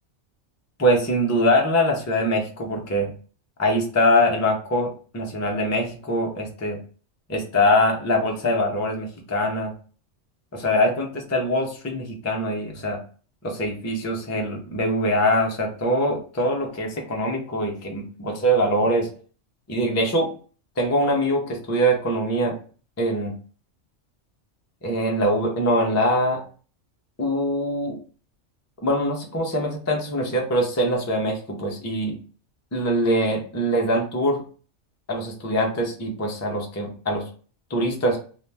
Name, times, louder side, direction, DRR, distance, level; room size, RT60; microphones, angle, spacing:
voice 1, 0.8-3.1 3.6-6.8 7.3-9.7 10.5-13.0 13.4-19.1 19.7-20.3 20.8-22.5 23.0-23.3 24.8-26.4 27.2-28.0 28.8-32.2 32.7-34.4 35.1-37.2 37.7-38.2, equal, 25° left, 1 dB, 0.3 m, -23 dB
2.7 x 2.1 x 3.2 m, 0.39 s
omnidirectional pair, 1.2 m